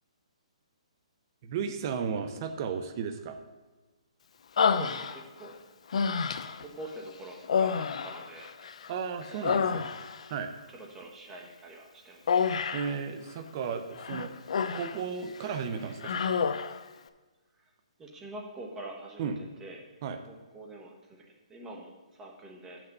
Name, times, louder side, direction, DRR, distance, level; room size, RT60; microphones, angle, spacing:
voice 1, 1.4-3.4 8.9-9.9 10.3-10.5 12.7-14.3 14.7-16.5 19.2-19.4 20.0-20.2, right 6 dB, 30° right, 8 dB, 0.5 m, -34 dB
Human voice, 4.6-5.5 5.9-6.7 7.4-8.9 9.2-10.3 12.3-13.0 14.0-15.0 15.4-15.6 16.0-16.8, left 6 dB, 65° left, 0.5 m, -29 dB
voice 2, 4.7-5.6 6.6-8.5 9.3-9.9 10.7-12.6 18.0-19.3 19.6-19.8 20.3-21.2 21.5-22.8, right 1 dB, 10° right, 0 dB, 1.0 m, -45 dB
6.6 x 6.0 x 6.6 m, 1.3 s
hypercardioid pair, 165°, 4 cm